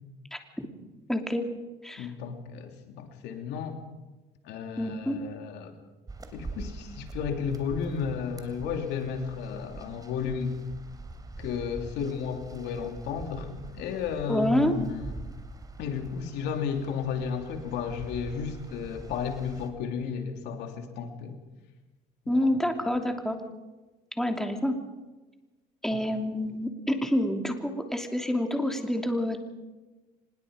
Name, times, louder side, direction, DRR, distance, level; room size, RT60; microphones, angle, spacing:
voice 1, 0.3-0.7 1.1-1.4 1.8-2.1 4.8-5.2 14.3-14.7 22.3-23.4 24.2-24.8 25.8-29.4, left 1 dB, 5° left, 4 dB, 2.9 m, -27 dB
voice 2, 2.0-3.8 4.4-5.7 6.3-10.6 11.4-15.2 15.8-21.4 22.3-22.5 25.9-26.0, left 6 dB, 90° left, 5 dB, 2.9 m, -33 dB
sound 1, 6.1-19.7, right 3 dB, 20° right, 3.1 m, -44 dB
25.5 x 21.0 x 5.2 m, 1.2 s
cardioid pair, 110°, 17 cm